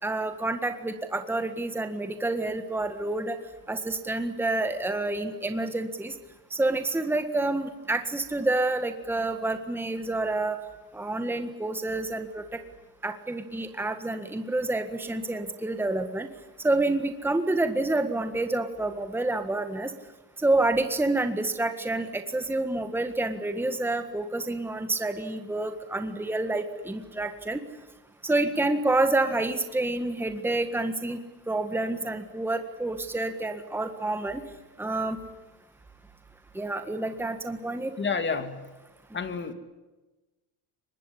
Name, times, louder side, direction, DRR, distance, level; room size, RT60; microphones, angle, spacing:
voice 1, 0.0-3.4 3.7-6.1 6.5-10.6 10.9-12.4 13.0-16.3 16.6-19.9 20.4-27.6 28.2-31.2 31.5-34.4 34.8-35.2 36.5-37.9, right 2 dB, 5° right, 7 dB, 1.7 m, -28 dB
voice 2, 38.0-38.6 39.1-39.5, left 5 dB, 25° left, 8 dB, 2.7 m, -29 dB
24.0 x 20.5 x 9.9 m, 1.1 s
cardioid pair, 120°, 44 cm